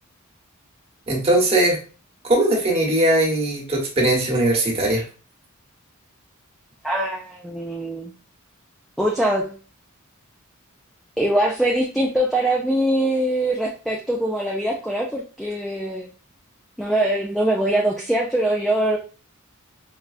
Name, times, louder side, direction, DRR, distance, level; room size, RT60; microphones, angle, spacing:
voice 1, 1.1-1.8 2.3-5.0, right 1 dB, 30° right, -3 dB, 1.2 m, -19 dB
voice 2, 6.8-8.1 9.0-9.6 11.2-16.1 16.8-19.0, right 1 dB, ahead, -2 dB, 0.4 m, -22 dB
4.7 x 2.3 x 2.4 m, 0.37 s
head